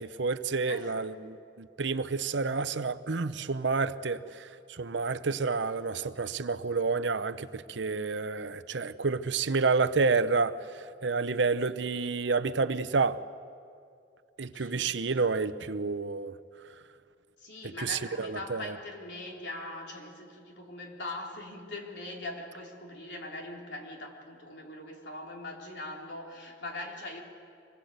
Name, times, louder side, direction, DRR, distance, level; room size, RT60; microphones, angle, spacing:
voice 1, 0.0-13.2 14.4-16.4 17.6-18.7, right 4 dB, 70° right, 13 dB, 0.8 m, -29 dB
voice 2, 14.5-15.0 17.4-27.2, left 2 dB, 65° left, 0 dB, 3.8 m, -41 dB
26.0 x 20.5 x 8.1 m, 2.4 s
head